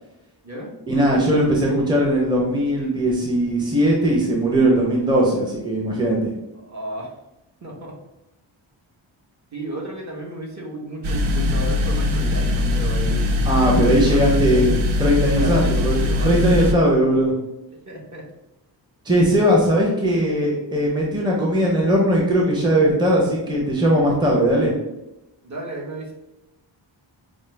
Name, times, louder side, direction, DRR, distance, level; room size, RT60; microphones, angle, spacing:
voice 1, 0.9-6.3 13.4-17.3 19.0-24.7, right 1 dB, 10° right, -3 dB, 0.7 m, -19 dB
voice 2, 6.6-7.1 7.6-8.0 9.5-14.8 15.4-16.9 17.9-18.3 25.4-26.1, right 1 dB, 35° right, -2 dB, 1.1 m, -34 dB
sound 1, 11.0-16.7, left 2 dB, 90° right, 0.6 m, -21 dB
5.0 x 2.0 x 3.3 m, 0.93 s
wide cardioid pair, 75°, 47 cm